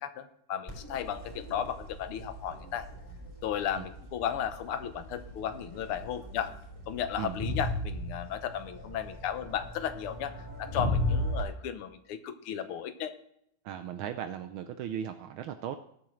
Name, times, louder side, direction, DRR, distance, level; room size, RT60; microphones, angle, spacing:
voice 1, 0.0-2.9 3.4-6.5 6.9-13.1, left 9 dB, 80° left, 10 dB, 1.8 m, -35 dB
Crowd, 0.7-11.4, left 1 dB, 15° left, 3.9 m, -37 dB
voice 2, 13.6-15.8, right 9 dB, 75° right, 8 dB, 1.4 m, -37 dB
19.5 x 8.7 x 3.2 m, 0.71 s
omnidirectional pair, 2.4 m